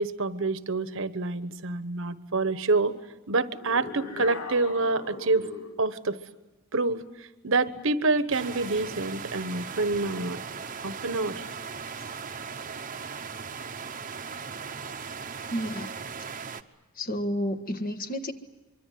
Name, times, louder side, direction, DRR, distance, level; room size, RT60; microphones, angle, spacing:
voice 1, 0.0-2.9 3.3-5.5 5.8-6.2 6.7-10.4 10.8-11.4, right 3 dB, 60° right, 12 dB, 1.2 m, -27 dB
sound 1, 3.5-5.8, left 3 dB, 75° left, 3.0 m, -39 dB
sound 2, 8.3-16.6, right 6 dB, 35° right, 1.0 m, -38 dB
voice 2, 15.5-15.9 17.0-18.3, equal, 40° left, 8 dB, 1.5 m, -30 dB
24.5 x 24.5 x 9.4 m, 1.1 s
head